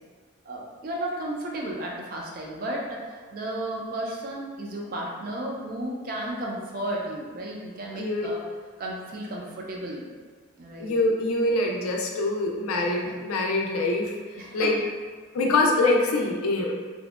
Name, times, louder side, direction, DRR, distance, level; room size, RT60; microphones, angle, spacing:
voice 1, 0.4-8.4 8.8-10.1 10.6-11.0 12.8-13.2 14.4-14.8, right 1 dB, 45° right, -2 dB, 0.3 m, -34 dB
voice 2, 8.0-8.3 10.8-14.1 14.5-14.7 15.3-16.7, left 2 dB, 90° left, 0 dB, 0.4 m, -24 dB
2.6 x 2.1 x 2.3 m, 1.5 s
head